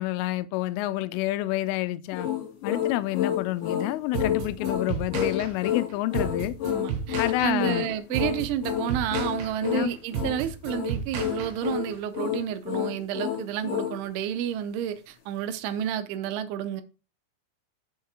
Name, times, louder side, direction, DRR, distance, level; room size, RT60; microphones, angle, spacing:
voice 1, 0.0-2.3 2.6-6.5 7.2-7.9 9.7-9.9, left 17 dB, 90° left, 3.1 m, -28 dB
sound 1, 2.1-14.0, left 10 dB, 60° left, 2.5 m, -30 dB
sound 2, 4.1-11.9, right 8 dB, 65° right, 2.7 m, -34 dB
voice 2, 6.7-16.8, right 10 dB, 80° right, 2.9 m, -30 dB
7.2 x 4.6 x 4.8 m
omnidirectional pair, 5.6 m